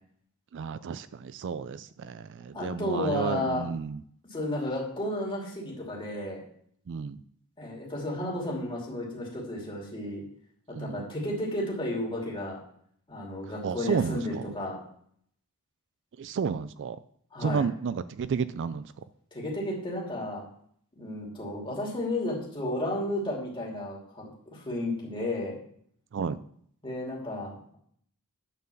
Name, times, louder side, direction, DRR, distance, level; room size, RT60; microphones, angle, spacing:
voice 1, 0.5-4.0 6.9-7.2 10.7-11.1 13.6-14.5 16.2-17.0 17.4-18.9 26.1-26.4, right 6 dB, 55° right, 15 dB, 0.3 m, -32 dB
voice 2, 2.5-3.6 4.3-6.4 7.6-10.2 10.8-12.6 13.1-14.8 17.3-17.6 19.3-20.4 21.0-25.6 26.8-27.8, left 1 dB, 20° left, -3 dB, 2.7 m, -33 dB
9.4 x 4.6 x 7.0 m, 0.64 s
head